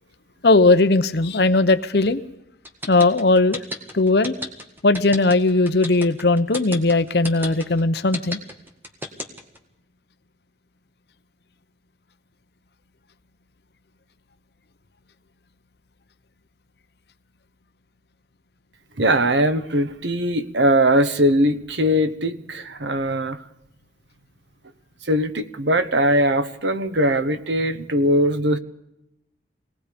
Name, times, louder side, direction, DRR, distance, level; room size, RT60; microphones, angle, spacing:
voice 1, 0.4-2.2 2.9-3.6 3.9-4.4 4.8-8.4, left 2 dB, 60° left, 10 dB, 0.8 m, -18 dB
sound 1, 2.6-9.6, left 1 dB, 10° right, 1.9 m, -32 dB
voice 2, 19.0-23.4 25.0-28.6, equal, 70° right, 11 dB, 1.2 m, -20 dB
26.5 x 19.0 x 5.2 m, 0.87 s
head